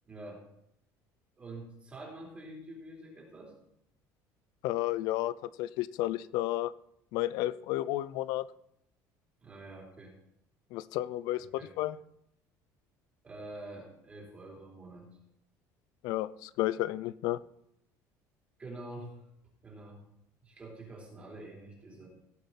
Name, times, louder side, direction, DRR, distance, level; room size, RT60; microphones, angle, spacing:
voice 1, 0.1-0.4 1.4-3.5 9.4-10.1 11.4-11.7 13.2-15.1 18.6-19.2 19.6-20.0 20.4-22.1, right 2 dB, 15° right, -2 dB, 3.8 m, -46 dB
voice 2, 4.6-6.7 7.1-8.5 10.7-11.5 11.8-12.0 16.0-17.4, left 15 dB, 65° left, 18 dB, 0.5 m, -32 dB
17.5 x 8.0 x 4.2 m, 0.75 s
cardioid pair, 165°, 7 cm